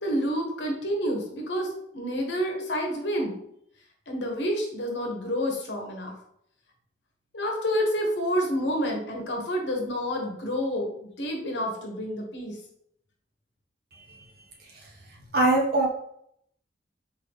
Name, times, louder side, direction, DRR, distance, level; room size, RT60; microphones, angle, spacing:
voice 1, 0.0-3.4 4.1-6.1 7.3-12.6, equal, 70° left, 1 dB, 1.1 m, -29 dB
voice 2, 13.9-14.2 14.7-14.9 15.3-15.9, right 2 dB, 55° right, -2 dB, 1.3 m, -23 dB
4.0 x 3.9 x 3.4 m, 0.72 s
head